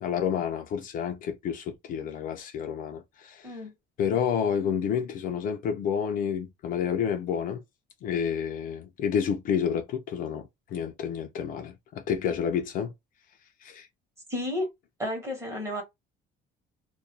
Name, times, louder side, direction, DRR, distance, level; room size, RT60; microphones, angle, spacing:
voice 1, 0.0-3.6 4.0-7.6 8.0-12.9 13.6-13.9, left 8 dB, 45° left, 0.4 m, -29 dB
voice 2, 3.4-3.7 14.3-14.7 15.0-15.8, left 1 dB, 15° right, 0.9 m, -31 dB
2.3 x 2.2 x 2.6 m
cardioid pair, 175°, 19 cm